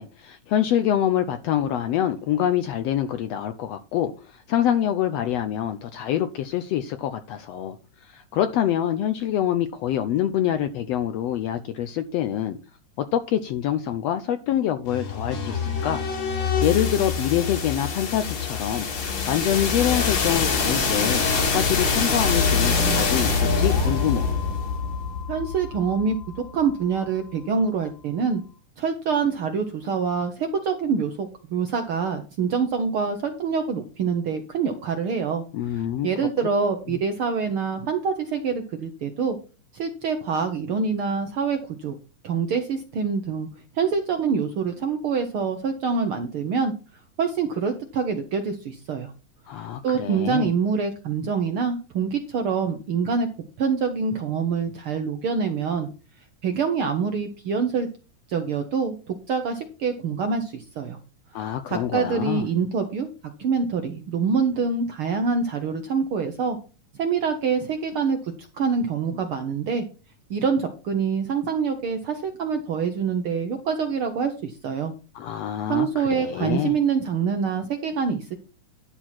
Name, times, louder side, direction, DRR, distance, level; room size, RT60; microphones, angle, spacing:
voice 1, 0.0-7.8 8.0-12.6 13.0-16.0 16.6-18.9 19.3-24.4 35.5-36.3 36.9-37.0 49.5-50.5 61.3-62.4 75.1-76.7, left 10 dB, 75° left, 1.5 m, -26 dB
sound 1, 14.9-26.7, left 5 dB, 60° left, 3.2 m, -25 dB
voice 2, 25.3-26.2 26.5-28.4 28.8-39.4 39.7-42.0 42.2-43.5 43.7-46.7 47.2-49.1 49.8-53.3 53.6-55.9 56.4-57.9 58.3-61.0 61.7-63.1 63.4-66.6 67.0-69.8 70.3-74.9 75.7-78.4, right 5 dB, 65° right, 1.3 m, -25 dB
11.5 x 4.5 x 5.9 m
omnidirectional pair, 3.5 m